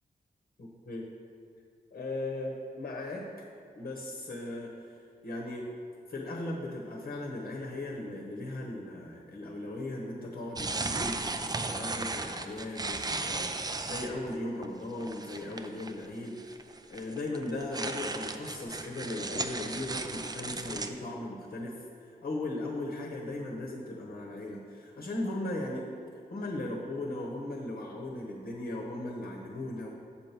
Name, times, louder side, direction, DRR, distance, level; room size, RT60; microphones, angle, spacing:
voice 1, 0.6-1.0 1.9-3.5 3.7-4.7 5.2-5.7 6.1-21.7 22.2-25.9 26.3-29.9, left 2 dB, 65° left, -1 dB, 1.1 m, -37 dB
sound 1, 10.6-14.4 14.6-14.7 15.0-16.1 16.4-20.9, right 3 dB, 25° right, 0.4 m, -35 dB
7.5 x 4.5 x 6.8 m, 2.3 s
wide cardioid pair, 105°, 16 cm